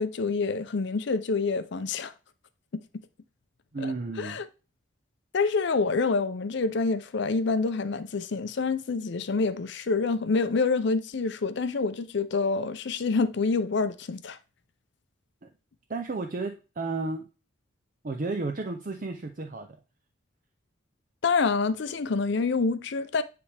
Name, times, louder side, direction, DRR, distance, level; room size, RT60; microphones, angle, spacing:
voice 1, 0.0-2.1 3.8-4.5 5.3-14.4 21.2-23.2, left 4 dB, 55° left, 0.5 m, -27 dB
voice 2, 3.7-4.4 15.4-15.5 15.9-17.3 18.0-19.7, right 3 dB, 40° right, 0.5 m, -32 dB
9.7 x 3.4 x 3.3 m
head